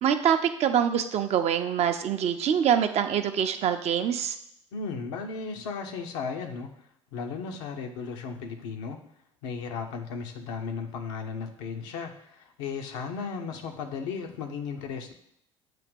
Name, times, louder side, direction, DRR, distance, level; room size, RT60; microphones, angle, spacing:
voice 1, 0.0-4.4, right 8 dB, 40° right, 7 dB, 0.6 m, -25 dB
voice 2, 4.7-6.7 7.1-9.0 9.4-15.1, left 5 dB, 65° left, 4 dB, 0.8 m, -35 dB
7.6 x 2.8 x 5.2 m, 0.73 s
figure-of-eight pair, 60°, 16 cm